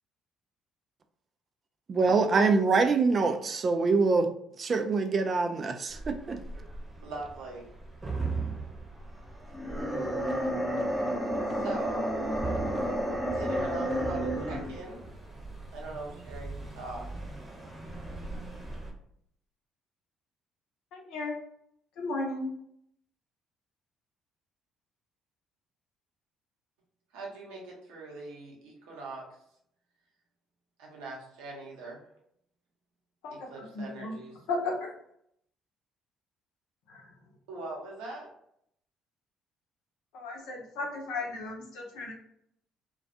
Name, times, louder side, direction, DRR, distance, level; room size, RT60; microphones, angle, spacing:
voice 1, 1.9-4.3 4.6-6.4, right 4 dB, 45° right, 7 dB, 0.4 m, -25 dB
sound 1, 5.9-18.9, right 3 dB, 25° right, 0.8 m, -40 dB
voice 2, 7.0-7.7 8.4-8.5 11.6-12.3 13.3-15.1 15.7-17.1 27.1-29.3 30.8-32.0 33.3-34.4 37.5-38.3, right 2 dB, 80° right, -2 dB, 0.8 m, -41 dB
sound 2, 9.5-14.8, equal, 5° left, 0.7 m, -31 dB
voice 3, 20.9-21.3 22.0-22.5 33.2-33.3 33.7-34.2 34.5-34.7 36.9-37.0 40.1-42.1, left 3 dB, 75° left, -1 dB, 0.7 m, -34 dB
2.3 x 2.2 x 2.7 m, 0.71 s
hypercardioid pair, 55°, 0 cm